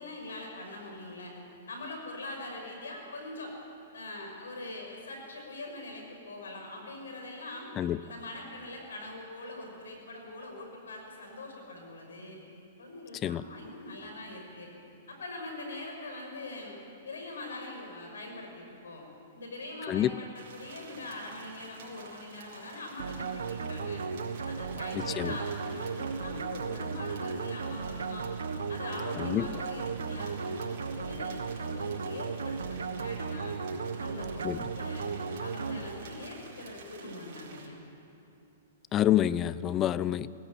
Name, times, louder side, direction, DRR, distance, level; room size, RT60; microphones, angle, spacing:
voice 1, 0.0-1.3 1.7-3.5 3.9-7.7 8.0-12.4 12.8-14.7 15.1-16.8 17.0-19.1 19.4-24.0 24.4-28.3 28.7-33.6 34.0-35.1 35.4-37.8, left 2 dB, 90° left, 2 dB, 5.7 m, -43 dB
sound 1, 20.4-37.7, right 5 dB, 65° right, 4.2 m, -51 dB
sound 2, 23.0-36.3, right 5 dB, 90° right, 1.1 m, -35 dB
voice 2, 24.9-25.3 29.2-29.5 34.4-34.6 38.9-40.4, left 12 dB, 25° left, 18 dB, 0.6 m, -28 dB
19.0 x 17.5 x 9.0 m, 2.9 s
hypercardioid pair, 130°, 0 cm